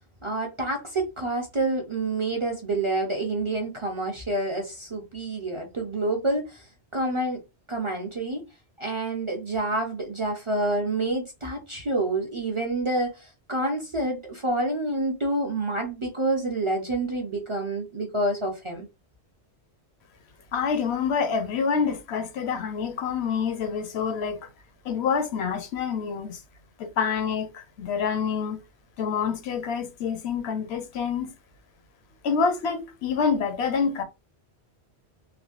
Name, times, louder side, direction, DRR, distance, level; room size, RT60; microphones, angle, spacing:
voice 1, 0.2-6.7 6.9-7.4 7.7-8.4 8.8-18.9, right 2 dB, 35° right, 0.5 m, -28 dB
voice 2, 20.5-24.4 24.8-26.4 26.8-28.6 29.0-31.3 32.2-34.0, left 6 dB, 75° left, 0.8 m, -27 dB
3.4 x 2.1 x 2.4 m
omnidirectional pair, 1.1 m